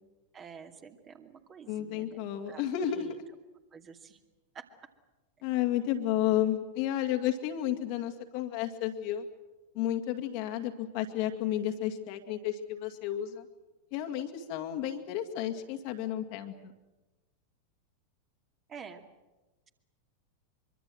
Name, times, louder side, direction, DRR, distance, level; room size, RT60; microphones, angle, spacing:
voice 1, 0.3-3.2 3.7-4.2 4.5-4.7 18.7-19.0, right 6 dB, 25° right, 4 dB, 2.5 m, -48 dB
voice 2, 1.7-3.2 5.4-9.3 9.7-13.5 13.9-16.7, left 11 dB, 45° left, 5 dB, 2.2 m, -32 dB
24.5 x 24.0 x 7.8 m, 1.1 s
figure-of-eight pair, 90°, 0 cm